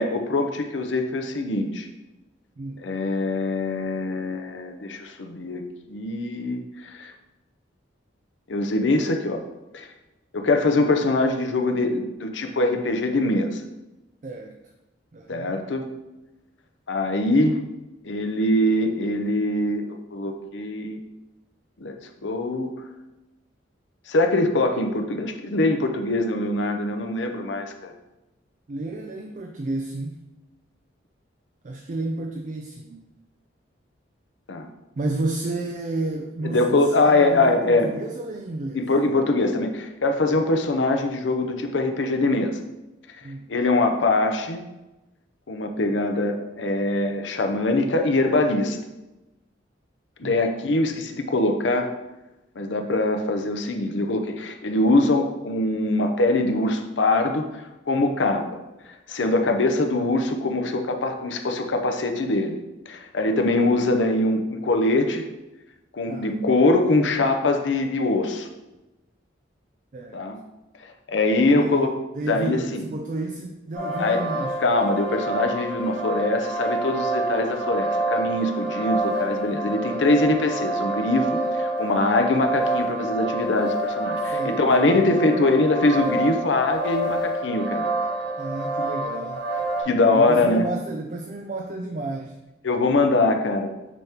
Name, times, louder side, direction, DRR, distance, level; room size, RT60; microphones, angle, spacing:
voice 1, 0.0-1.9 2.8-5.6 5.9-7.1 8.5-9.4 9.7-9.9 10.3-13.6 15.3-15.9 16.9-17.6 18.0-21.0 21.8-22.0 22.2-22.7 24.1-27.9 34.5-34.7 36.4-37.9 38.7-42.6 43.5-44.6 45.5-48.8 50.2-51.9 52.6-57.5 57.9-58.5 59.1-65.2 65.9-68.5 70.1-70.4 71.1-71.9 72.3-72.8 74.0-74.2 74.6-87.9 89.8-90.7 92.6-93.7, left 2 dB, 75° left, 5 dB, 0.6 m, -23 dB
voice 2, 2.6-2.9 14.2-14.6 15.1-15.6 28.7-30.2 31.6-33.0 35.0-38.9 43.2-43.5 50.2-50.4 66.1-66.4 69.9-70.3 71.5-71.9 72.2-74.6 84.3-85.1 88.4-89.5 90.1-92.3, right 2 dB, 40° right, 3 dB, 0.4 m, -31 dB
sound 1, 73.7-89.8, right 2 dB, 60° right, 2.1 m, -27 dB
9.1 x 3.5 x 2.9 m, 1.0 s
head